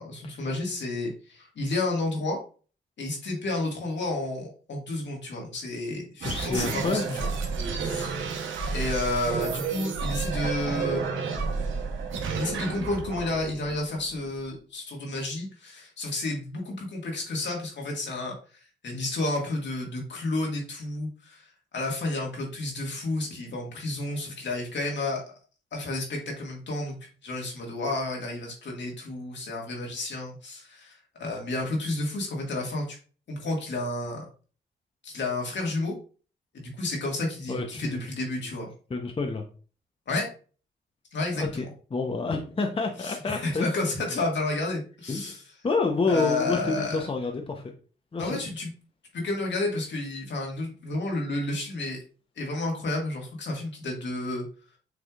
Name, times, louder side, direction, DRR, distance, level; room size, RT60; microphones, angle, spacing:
voice 1, 0.0-2.4 3.0-7.3 7.8-8.1 8.7-11.3 12.3-18.3 18.8-21.5 21.7-25.2 25.7-33.0 33.3-34.3 35.0-35.9 36.5-38.7 40.1-40.3 41.1-41.6 43.0-45.4 46.1-47.0 48.2-48.7 49.1-52.0 52.4-54.5, left 2 dB, 70° left, 0 dB, 1.8 m, -31 dB
voice 2, 6.2-7.2 37.5-38.0 38.9-39.4 41.4-43.7 45.1-45.4 45.6-47.7 48.1-48.4, left 3 dB, 30° left, 3 dB, 0.7 m, -28 dB
sound 1, 6.2-14.4, right 5 dB, 85° right, 0.9 m, -31 dB
6.3 x 3.4 x 2.4 m, 0.38 s
cardioid pair, 70°, 19 cm